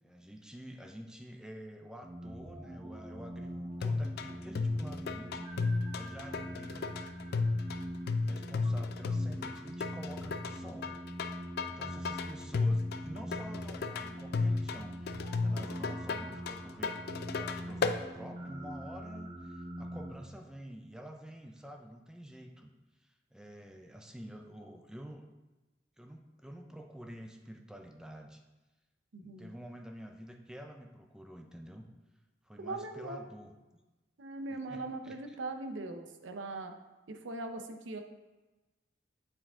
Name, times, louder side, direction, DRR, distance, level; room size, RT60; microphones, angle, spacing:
voice 1, 0.0-7.0 8.2-11.0 11.7-16.9 17.3-22.7 23.0-25.3 26.0-28.4 29.2-31.9 32.4-33.5 34.5-35.4, equal, 5° right, 3 dB, 0.4 m, -49 dB
sound 1, 2.0-20.1, right 1 dB, 30° right, 0.9 m, -43 dB
sound 2, 3.8-18.0, left 4 dB, 55° left, 0.4 m, -34 dB
voice 2, 29.1-29.5 32.6-33.2 34.2-36.7 37.1-38.0, right 2 dB, 85° right, 7 dB, 0.7 m, -40 dB
7.6 x 4.7 x 3.6 m, 1.1 s
head